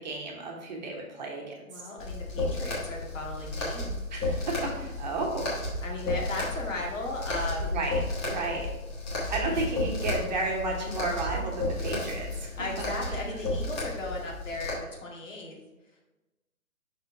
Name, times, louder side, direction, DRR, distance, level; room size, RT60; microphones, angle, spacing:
voice 1, 0.0-1.8 4.1-5.6 7.7-8.7 9.3-12.6 13.1-13.4, right 3 dB, 30° right, 0 dB, 1.1 m, -33 dB
voice 2, 1.7-4.0 5.8-7.8 9.4-9.6 12.6-15.6, left 2 dB, 60° left, -2 dB, 2.0 m, -36 dB
sound 1, 2.0-14.7, left 2 dB, 20° left, 1.3 m, -33 dB
5.9 x 4.3 x 4.4 m, 1.1 s
figure-of-eight pair, 140°, 43 cm